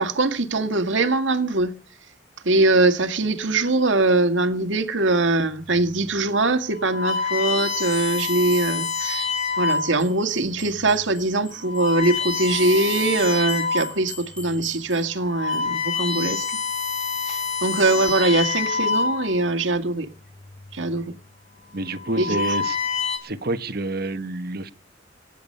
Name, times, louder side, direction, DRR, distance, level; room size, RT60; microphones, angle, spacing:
voice 1, 0.0-1.7 2.4-9.3 9.6-16.6 17.3-20.1 20.7-21.1 22.2-22.4, right 2 dB, 80° right, 1.8 m, -22 dB
sound 1, 5.8-6.1 6.7-10.1 10.8-11.0 11.5-14.0 14.5-14.6 15.1-19.6 20.6-21.0 21.8-23.2, left 5 dB, 35° left, 4.1 m, -27 dB
sound 2, 7.9-15.1, left 1 dB, 5° left, 5.7 m, -44 dB
voice 2, 21.7-22.8 23.2-24.7, right 2 dB, 55° right, 1.3 m, -28 dB
23.5 x 10.5 x 5.5 m
head